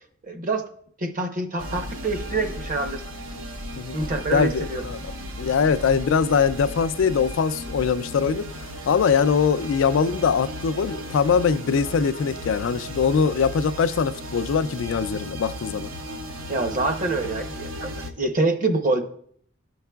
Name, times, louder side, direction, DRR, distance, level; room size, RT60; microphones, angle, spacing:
voice 1, 0.2-0.6 1.0-3.0 3.9-4.8 16.5-19.0, right 3 dB, 45° right, 0.8 m, -26 dB
sound 1, 1.6-18.1, equal, 85° right, 0.7 m, -35 dB
voice 2, 4.3-5.0 5.4-8.5 8.9-15.9, left 6 dB, 80° left, 0.4 m, -22 dB
13.0 x 4.7 x 2.3 m
head